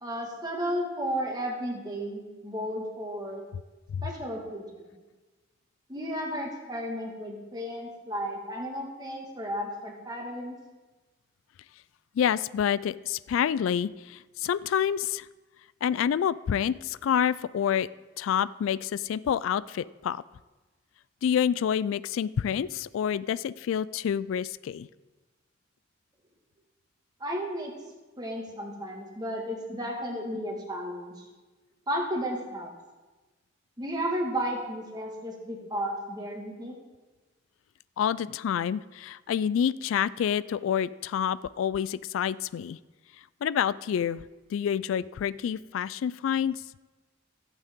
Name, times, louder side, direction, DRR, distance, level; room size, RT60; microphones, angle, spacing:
voice 1, 0.0-3.5 4.0-5.0 5.9-10.6 27.2-27.7 28.2-31.2 31.9-32.7 33.8-36.8, equal, 20° right, 0 dB, 1.7 m, -33 dB
voice 2, 12.2-15.3 15.8-17.9 18.2-20.2 21.2-24.9 38.0-42.8 43.4-44.2 44.5-46.6, left 8 dB, 85° left, 19 dB, 0.3 m, -28 dB
15.0 x 8.2 x 3.7 m, 1.2 s
head